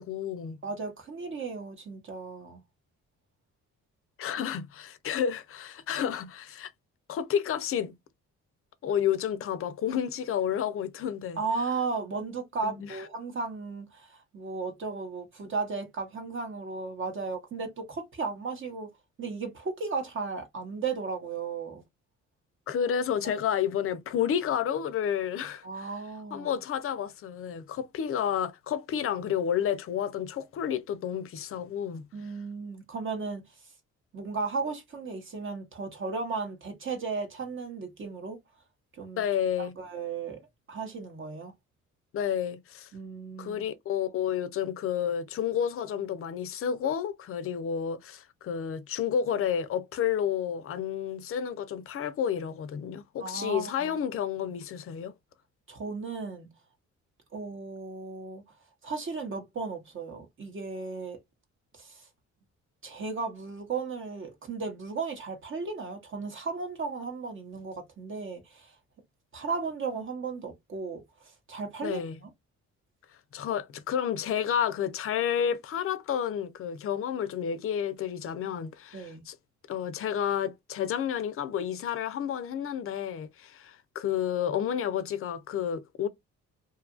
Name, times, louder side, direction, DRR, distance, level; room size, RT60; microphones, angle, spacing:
voice 1, 0.0-0.6 4.2-6.7 7.1-7.9 8.8-11.4 12.6-13.0 22.7-25.9 26.3-32.1 39.2-39.7 42.1-42.9 43.4-55.1 71.8-72.2 73.3-79.4 79.7-86.1, left 9 dB, 45° left, 0.5 m, -30 dB
voice 2, 0.6-2.6 11.4-18.9 19.2-21.8 23.2-23.3 25.6-26.6 32.1-33.4 34.1-38.4 38.9-39.2 39.6-40.4 40.7-41.5 42.9-43.6 53.2-53.9 55.7-56.5 57.3-58.4 58.8-61.2 61.7-62.1 62.8-68.8 69.3-72.3 78.9-79.2, right 4 dB, 40° right, 0.8 m, -35 dB
2.7 x 2.4 x 2.4 m
cardioid pair, 90°, 30 cm